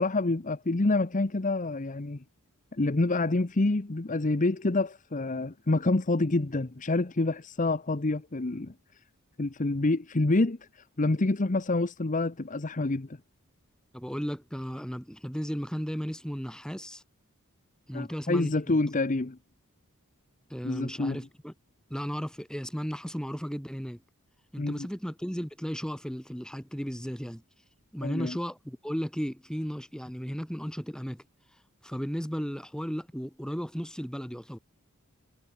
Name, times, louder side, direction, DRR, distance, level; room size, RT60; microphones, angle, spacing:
voice 1, 0.0-2.2 2.7-8.7 9.4-13.1 17.9-19.4 20.6-21.2 24.6-24.9 28.0-28.4, left 2 dB, 35° left, 0.9 m, -27 dB
voice 2, 13.9-17.0 17.9-18.8 20.5-21.5 21.9-24.0 24.5-27.4 27.9-31.2 31.8-34.6, equal, 5° left, 3.8 m, -35 dB
head